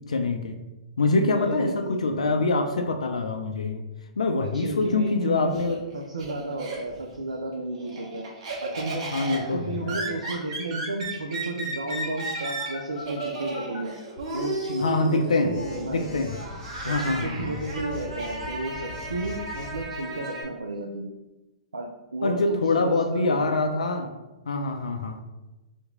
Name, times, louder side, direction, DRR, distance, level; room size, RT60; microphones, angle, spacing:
voice 1, 0.1-0.6 1.0-3.8 4.2-5.8 9.1-10.0 14.8-15.5 15.9-16.4 16.8-17.6 22.2-24.1 24.5-25.2, left 3 dB, 75° left, 5 dB, 0.3 m, -25 dB
voice 2, 1.3-2.4 4.4-5.5 5.9-13.9 14.3-16.1 16.8-21.1 21.7-23.4, right 2 dB, 85° right, 1 dB, 0.4 m, -33 dB
Laughter, 5.0-7.2 7.5-20.4, right 2 dB, 60° right, 1.0 m, -35 dB
Telephone, 12.4-13.8 15.5-19.9, left 2 dB, 35° left, 1.5 m, -41 dB
2.9 x 2.5 x 3.6 m, 1.0 s
figure-of-eight pair, 110°, 4 cm